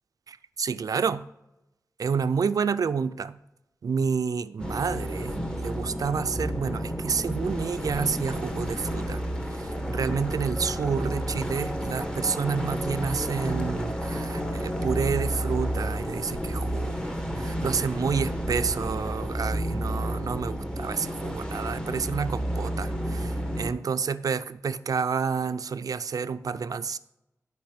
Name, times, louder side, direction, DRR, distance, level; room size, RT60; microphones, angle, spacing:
voice 1, 0.3-1.3 2.0-3.4 3.8-9.2 9.5-17.0 17.4-27.0, right 6 dB, 85° right, 0.4 m, -29 dB
sound 1, 4.6-23.7, equal, 10° left, 1.4 m, -31 dB
12.0 x 5.4 x 5.1 m
wide cardioid pair, 120°, 6 cm